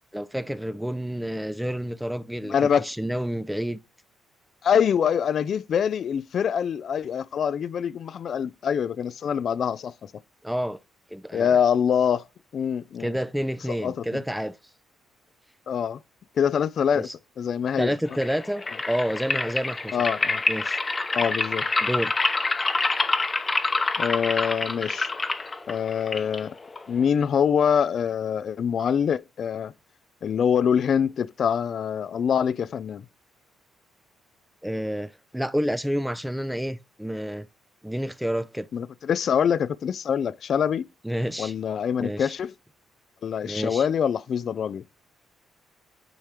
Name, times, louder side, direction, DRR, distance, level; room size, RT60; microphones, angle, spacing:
voice 1, 0.1-3.8 10.4-10.8 11.1-11.6 13.0-14.6 16.9-17.1 17.8-20.0 20.5-20.8 21.8-22.1 34.6-37.5 37.8-38.7 41.0-41.5 42.0-42.3 43.4-43.9, equal, 5° right, 0.5 m, -29 dB
voice 2, 2.4-2.9 4.6-10.1 11.3-12.3 12.5-13.1 13.8-14.2 15.7-16.0 16.4-17.1 17.4-18.0 19.9-20.4 21.1-21.7 24.0-25.1 25.7-26.5 26.9-29.7 30.2-33.1 38.7-40.9 41.4-42.5 43.2-44.8, left 7 dB, 55° left, 0.4 m, -24 dB
sound 1, 18.1-27.1, left 3 dB, 25° left, 0.8 m, -27 dB
9.0 x 3.0 x 4.9 m
cardioid pair, 90°, 0 cm